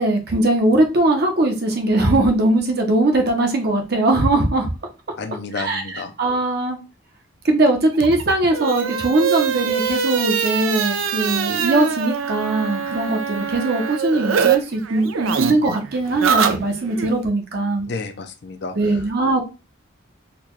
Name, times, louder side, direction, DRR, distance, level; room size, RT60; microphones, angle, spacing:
voice 1, 0.0-4.7 5.5-6.8 7.4-17.9 18.7-19.4, right 2 dB, 50° right, 3 dB, 0.8 m, -20 dB
voice 2, 5.2-6.1 17.9-19.0, left 4 dB, 55° left, 8 dB, 0.5 m, -31 dB
sound 1, 7.9-14.6 14.8-17.1, right 7 dB, 90° right, 0.5 m, -23 dB
4.0 x 2.3 x 3.0 m, 0.29 s
head